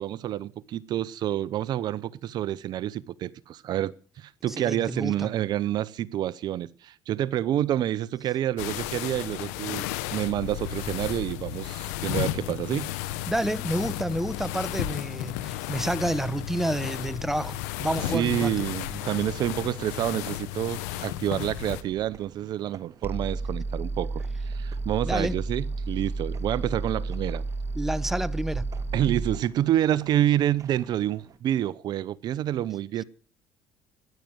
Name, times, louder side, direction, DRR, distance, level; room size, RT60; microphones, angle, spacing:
voice 1, 0.0-9.9 10.1-12.9 18.1-27.4 28.9-33.0, right 12 dB, 60° right, 0.7 m, -28 dB
voice 2, 4.5-5.3 13.3-18.5 25.1-25.4 27.7-28.7, right 1 dB, 5° right, 0.9 m, -29 dB
sound 1, 8.6-21.8, left 14 dB, 90° left, 0.9 m, -33 dB
sound 2, 18.1-31.4, right 8 dB, 45° right, 2.1 m, -49 dB
sound 3, 23.0-29.4, right 3 dB, 25° right, 1.1 m, -31 dB
14.0 x 10.5 x 7.8 m
supercardioid pair, 80°, 8 cm